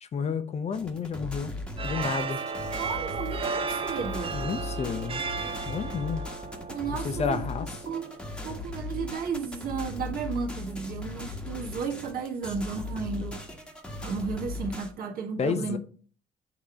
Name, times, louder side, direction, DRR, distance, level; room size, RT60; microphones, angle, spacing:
voice 1, 0.0-1.5 1.8-2.4 4.3-5.2 5.7-6.2 7.0-7.7 15.4-15.8, left 6 dB, 40° left, 0.7 m, -30 dB
sound 1, 0.7-14.9, left 2 dB, 5° left, 1.3 m, -38 dB
sound 2, 1.8-9.0, right 5 dB, 35° right, 0.6 m, -35 dB
voice 2, 2.8-4.4 6.7-7.5 7.9-8.1 8.4-13.4 14.0-15.8, right 5 dB, 60° right, 1.7 m, -33 dB
8.5 x 3.0 x 5.0 m
cardioid pair, 110°, 17 cm